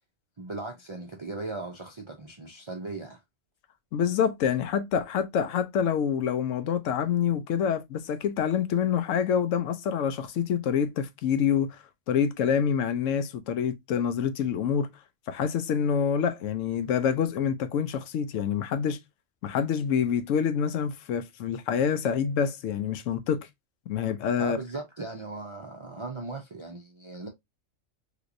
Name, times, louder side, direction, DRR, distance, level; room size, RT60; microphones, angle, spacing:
voice 1, 0.4-3.2 24.4-27.3, right 3 dB, 45° right, 0.3 m, -38 dB
voice 2, 3.9-11.8 12.1-14.9 15.3-19.0 19.4-23.5 23.9-24.6, left 7 dB, 85° left, 0.9 m, -26 dB
3.3 x 2.9 x 2.5 m
omnidirectional pair, 1.3 m